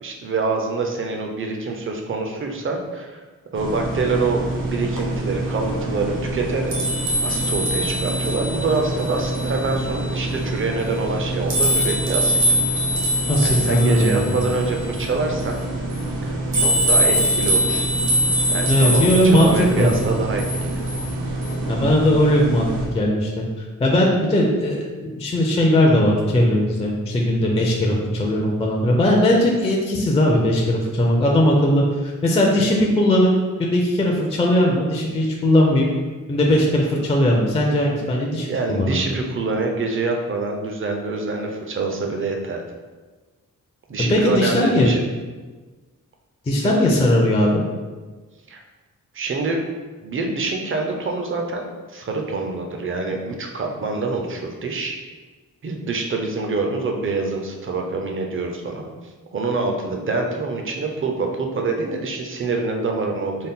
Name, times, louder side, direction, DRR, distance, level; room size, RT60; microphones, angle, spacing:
voice 1, 0.0-3.2 3.5-6.7 7.2-12.6 13.4-15.6 16.2-17.8 18.5-20.9 38.5-42.6 43.9-45.0 46.6-46.7 48.5-48.6 49.1-49.6 50.0-55.0 55.6-58.9 59.3-63.5, right 3 dB, 40° right, 2 dB, 0.5 m, -25 dB
sound 1, 3.6-22.9, right 1 dB, 85° right, 0.9 m, -23 dB
voice 2, 13.3-14.3 18.7-19.9 21.7-22.7 22.9-23.4 23.8-33.3 33.6-35.9 36.3-39.0 44.0-44.9 46.5-47.6, left 1 dB, 20° left, -1 dB, 0.4 m, -18 dB
4.0 x 2.1 x 3.6 m, 1.3 s
wide cardioid pair, 155°, 32 cm